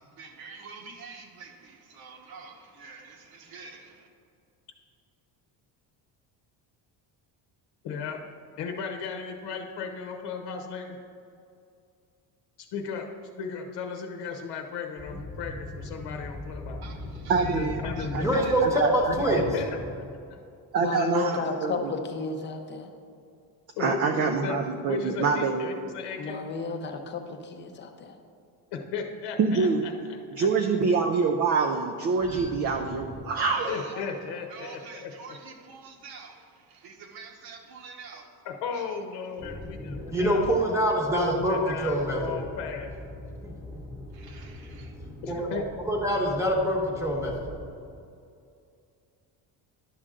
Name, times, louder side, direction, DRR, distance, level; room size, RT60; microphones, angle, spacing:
voice 1, 0.0-4.1 16.8-18.6 33.4-34.1 34.5-38.3 38.7-39.0 44.1-44.9, right 5 dB, 60° right, 4 dB, 1.1 m, -46 dB
voice 2, 7.8-8.2 8.6-11.0 12.6-13.1 13.4-16.8 17.4-18.3 19.5-19.7 20.3-20.4 20.8-21.4 23.8-26.4 28.7-30.5 33.7-35.4 38.4-40.4 41.1-42.9 45.2-45.6, left 6 dB, 75° left, 4 dB, 0.9 m, -36 dB
voice 3, 16.0-16.3 16.6-17.3 17.9-19.5 32.3-33.2 39.4-42.4 43.1-47.7, equal, 5° right, -2 dB, 0.9 m, -28 dB
voice 4, 17.3-17.7 18.1-19.4 20.7-21.9 23.8-25.7 29.4-29.8 30.4-33.8, right 5 dB, 40° right, 4 dB, 0.4 m, -26 dB
voice 5, 20.8-22.9 26.2-28.2, left 4 dB, 25° left, 5 dB, 0.6 m, -32 dB
11.0 x 6.5 x 3.7 m, 2.5 s
cardioid pair, 175°, 41 cm